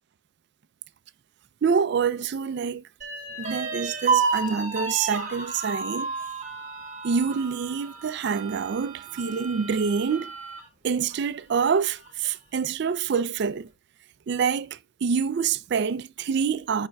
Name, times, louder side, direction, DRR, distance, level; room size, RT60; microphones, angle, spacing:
voice 1, 1.6-2.8 3.4-6.1 7.0-10.3 10.8-13.7 14.3-16.9, right 6 dB, 55° right, 0.3 m, -26 dB
sound 1, 3.0-10.6 11.1-11.2 11.6-12.3, right 5 dB, 35° right, 1.3 m, -31 dB
8.6 x 5.7 x 2.2 m
head